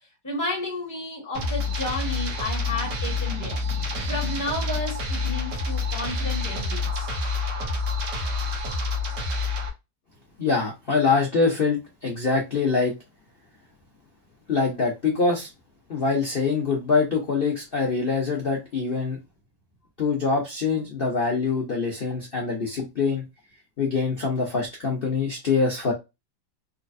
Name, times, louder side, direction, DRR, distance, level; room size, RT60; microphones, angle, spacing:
voice 1, 0.2-3.6 4.1-7.1, left 1 dB, 10° left, 1.4 m, -32 dB
sound 1, 1.3-9.7, left 3 dB, 65° right, 1.6 m, -28 dB
voice 2, 10.4-12.9 14.5-15.5 15.9-19.2 20.0-23.2 23.8-25.9, left 4 dB, 90° left, 0.5 m, -24 dB
4.3 x 2.4 x 2.5 m
omnidirectional pair, 2.1 m